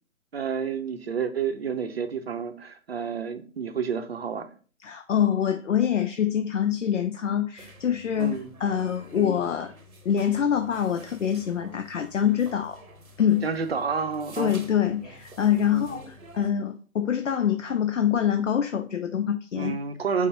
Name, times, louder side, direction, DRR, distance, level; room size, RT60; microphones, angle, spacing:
voice 1, 0.3-4.5 8.2-8.5 9.1-9.3 13.4-14.6 15.7-16.0 19.6-20.3, right 6 dB, 45° right, 0.6 m, -30 dB
voice 2, 4.8-9.7 10.1-12.8 13.2-13.5 14.4-19.8, left 9 dB, 60° left, 0.5 m, -25 dB
sound 1, 7.6-16.5, right 1 dB, 85° right, 1.0 m, -49 dB
5.4 x 2.1 x 4.7 m
figure-of-eight pair, 140°, 42 cm